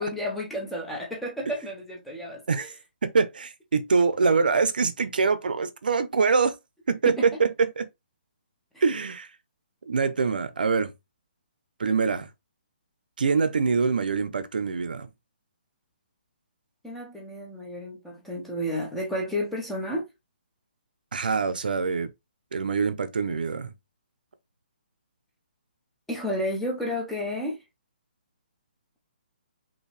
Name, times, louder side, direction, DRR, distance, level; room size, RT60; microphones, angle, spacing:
voice 1, 0.0-2.7 7.0-7.3 16.8-20.0 26.1-27.6, left 1 dB, ahead, 0.6 m, -31 dB
voice 2, 3.0-6.6 6.9-7.9 8.8-9.3 9.9-10.9 11.8-12.3 13.2-15.1 21.1-22.1 22.5-23.7, right 5 dB, 60° right, 0.8 m, -24 dB
5.5 x 2.9 x 3.3 m
hypercardioid pair, 180°, 6 cm